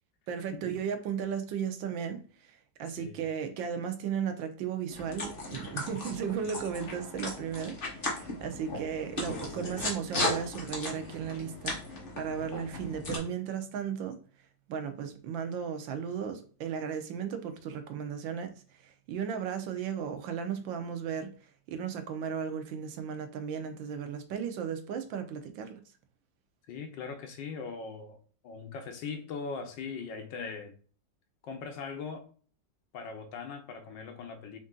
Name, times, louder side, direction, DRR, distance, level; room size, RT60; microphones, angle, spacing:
voice 1, 0.3-11.8 12.2-14.2 14.7-21.3 21.7-25.8, right 7 dB, 90° right, 1.5 m, -35 dB
sound 1, 4.9-13.2, left 2 dB, 35° left, 1.1 m, -37 dB
voice 2, 26.7-30.7 31.4-32.3 32.9-34.6, left 5 dB, 75° left, 1.4 m, -40 dB
4.5 x 2.7 x 3.7 m
omnidirectional pair, 2.0 m